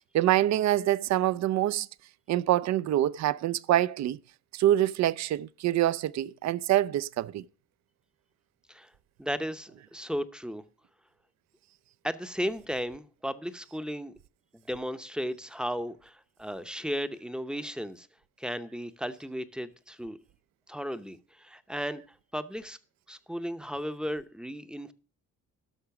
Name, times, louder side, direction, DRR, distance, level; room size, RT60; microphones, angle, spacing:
voice 1, 0.1-1.9 2.3-4.2 4.5-7.4, right 13 dB, 65° right, 0.5 m, -25 dB
voice 2, 9.2-10.6 12.0-14.1 14.5-18.1 18.4-20.2 20.7-22.8 23.1-24.9, equal, 5° right, 0.7 m, -35 dB
11.5 x 6.2 x 5.8 m
cardioid pair, 90°, 30 cm